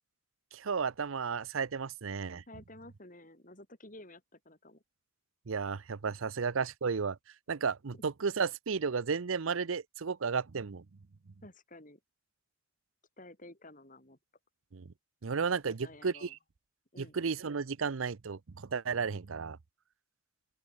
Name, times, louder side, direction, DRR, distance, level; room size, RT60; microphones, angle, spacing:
voice 1, 0.5-2.4 5.5-7.2 7.5-10.8 14.7-14.9 15.2-16.3 17.0-19.6, right 5 dB, 75° right, 0.6 m, -33 dB
voice 2, 2.5-4.8 7.9-8.0 11.4-12.0 13.2-14.2 15.6-16.3 16.9-17.2, left 1 dB, 40° left, 6.1 m, -52 dB
open air
head